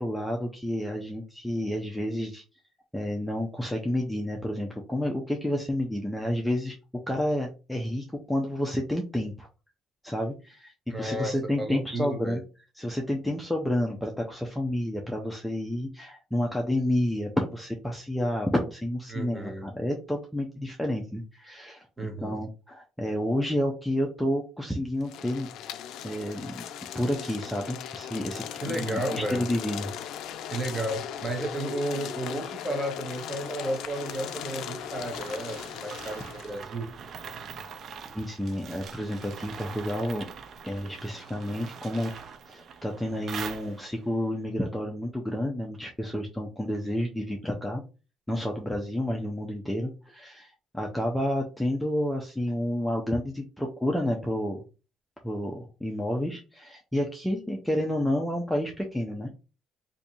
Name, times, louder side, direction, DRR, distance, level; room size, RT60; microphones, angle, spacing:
voice 1, 0.0-2.4 2.9-6.7 7.1-9.5 10.0-12.4 12.8-25.5 26.0-26.6 26.9-30.0 38.1-40.3 40.6-42.1 42.5-47.8 48.3-54.6 55.2-59.3, left 1 dB, 5° left, 0.5 m, -30 dB
voice 2, 10.9-12.4 19.1-19.7 22.0-22.4 28.6-29.5 30.5-36.9, right 1 dB, 20° right, 0.9 m, -33 dB
sound 1, 25.0-36.6, left 9 dB, 75° left, 0.3 m, -38 dB
sound 2, 33.1-44.1, right 6 dB, 50° right, 0.5 m, -43 dB
2.6 x 2.5 x 4.2 m
cardioid pair, 135°, 0 cm